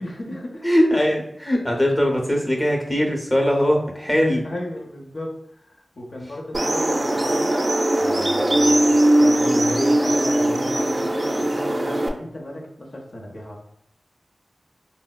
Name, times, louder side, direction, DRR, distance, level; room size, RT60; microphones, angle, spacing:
voice 1, 0.0-0.7 4.4-7.5 8.0-13.6, equal, 70° left, -1 dB, 0.7 m, -33 dB
voice 2, 0.6-4.4, equal, 20° left, 1 dB, 0.7 m, -20 dB
sound 1, 6.5-12.1, right 1 dB, 45° right, 0.3 m, -20 dB
4.1 x 2.0 x 2.2 m, 0.72 s
wide cardioid pair, 60°, 0 cm